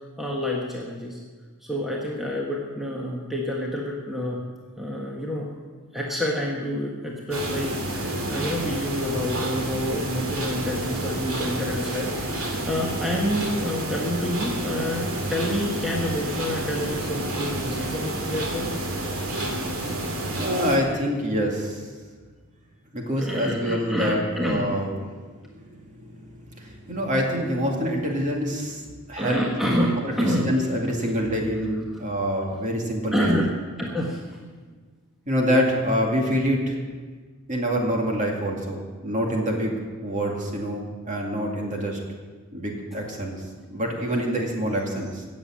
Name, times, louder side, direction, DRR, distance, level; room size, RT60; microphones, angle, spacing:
voice 1, 0.2-1.2 1.6-4.4 4.8-5.5 5.9-18.7 20.2-20.3 23.2-24.7 29.2-30.5 31.9-32.0 33.1-33.5 33.8-34.4, equal, ahead, -3 dB, 1.4 m, -28 dB
sound 1, 7.3-20.8, right 1 dB, 65° right, 2.4 m, -29 dB
voice 2, 20.4-21.9 22.9-24.9 25.6-29.4 29.7-33.4 35.3-36.8 37.5-42.0 42.5-43.4 43.7-45.3, equal, 35° right, 0 dB, 2.4 m, -26 dB
17.5 x 7.3 x 7.5 m, 1.5 s
head